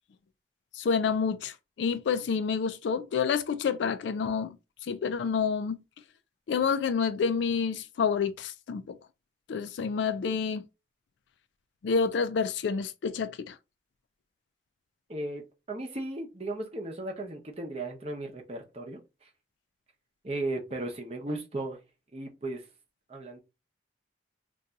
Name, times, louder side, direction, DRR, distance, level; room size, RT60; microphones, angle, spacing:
voice 1, 0.7-4.6 4.8-5.8 6.5-9.0 9.5-10.6 11.8-13.6, left 6 dB, 80° left, 0.3 m, -28 dB
voice 2, 15.1-19.3 20.2-21.8 22.1-22.7 23.1-23.4, right 2 dB, 35° right, 0.7 m, -36 dB
2.6 x 2.3 x 3.8 m
head